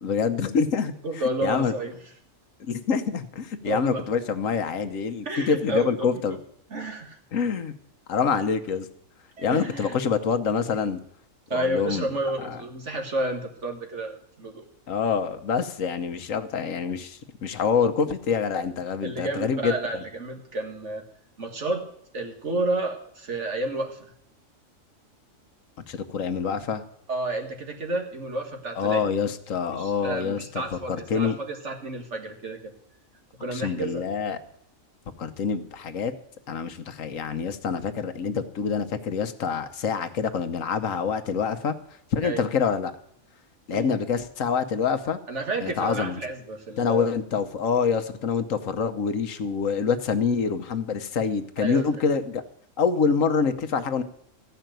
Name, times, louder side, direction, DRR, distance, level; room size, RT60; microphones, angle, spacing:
voice 1, 0.0-0.9 1.4-1.7 2.6-6.4 7.3-7.7 8.1-8.9 9.4-11.0 11.5-12.6 14.9-20.0 25.9-26.8 28.8-31.4 33.5-34.4 35.2-36.1 36.5-41.8 42.1-42.9 43.7-45.2 45.6-46.2 46.8-52.4 52.8-54.0, left 6 dB, 75° left, 9 dB, 1.3 m, -26 dB
voice 2, 1.0-2.0 3.6-4.1 5.2-6.2 6.7-7.2 9.4-10.0 11.5-14.7 19.0-21.0 21.4-21.9 22.1-24.1 27.1-29.1 29.7-32.7 33.4-34.0 42.2-42.4 43.7-43.9 45.3-47.1 51.6-51.9, right 2 dB, 60° right, 3 dB, 2.0 m, -31 dB
14.5 x 5.7 x 9.1 m, 0.70 s
omnidirectional pair, 1.4 m